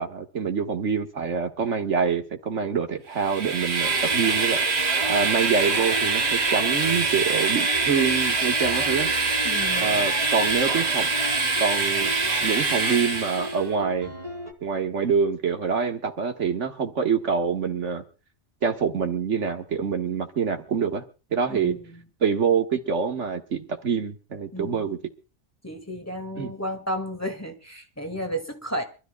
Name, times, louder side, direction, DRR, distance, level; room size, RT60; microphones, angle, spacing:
voice 1, 0.0-4.6 5.1-9.1 9.8-11.1 11.6-12.1 12.4-14.1 14.6-18.0 18.6-21.0 21.3-21.8 22.2-25.0 26.4-26.5, right 6 dB, 80° right, 4 dB, 1.9 m, -26 dB
Train, 3.2-13.6, right 4 dB, 60° right, 2.1 m, -24 dB
sound 1, 3.8-14.5, equal, 30° right, 2.5 m, -37 dB
voice 2, 9.4-10.1 21.5-22.0 24.5-24.9 25.6-28.8, equal, 15° left, 4 dB, 1.9 m, -33 dB
26.5 x 13.0 x 2.3 m, 0.34 s
omnidirectional pair, 1.2 m